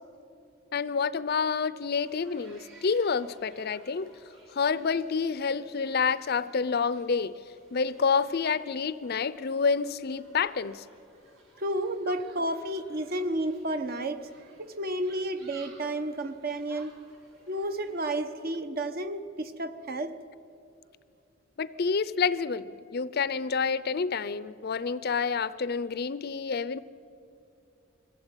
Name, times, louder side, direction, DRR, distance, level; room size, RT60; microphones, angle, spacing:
voice 1, 0.7-4.1 4.5-7.4 7.7-10.8 12.2-12.3 21.6-26.8, left 5 dB, 55° left, 17 dB, 0.5 m, -28 dB
sound 1, 2.0-18.1, right 2 dB, 75° right, 4.1 m, -58 dB
voice 2, 11.6-16.9 17.5-20.1, right 1 dB, 50° right, 9 dB, 1.0 m, -32 dB
21.0 x 15.0 x 9.0 m, 2.6 s
head